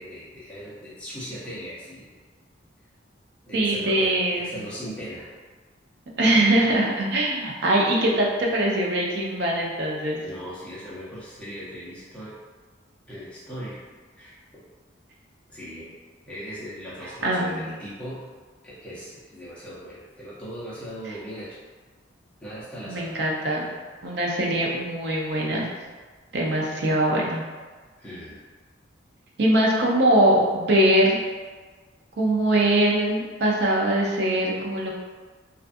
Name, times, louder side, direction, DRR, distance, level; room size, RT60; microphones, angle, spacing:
voice 1, 0.0-2.1 3.5-5.3 10.2-12.4 13.1-13.8 14.2-14.6 15.5-15.9 16.3-18.3 18.6-21.6 22.4-23.1 28.0-28.4, equal, 5° left, -10 dB, 0.6 m, -38 dB
voice 2, 3.5-4.6 6.2-10.2 17.0-17.8 22.8-23.7 24.0-25.7 26.3-27.4 29.4-31.2 32.2-34.9, right 1 dB, 60° right, -2 dB, 0.5 m, -22 dB
2.4 x 2.3 x 2.5 m, 1.4 s
head